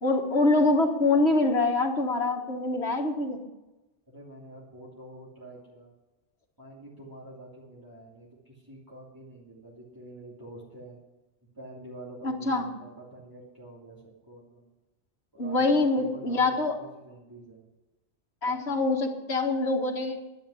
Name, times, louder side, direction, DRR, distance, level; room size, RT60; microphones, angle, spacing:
voice 1, 0.0-3.4 12.2-12.7 15.4-16.7 18.4-20.2, left 2 dB, 75° left, 1 dB, 2.2 m, -25 dB
voice 2, 4.1-5.9 6.6-11.0 11.5-14.7 15.4-17.7 18.7-18.8, right 1 dB, 20° right, -6 dB, 3.0 m, -47 dB
11.0 x 9.5 x 9.8 m, 1.0 s
omnidirectional pair, 1.1 m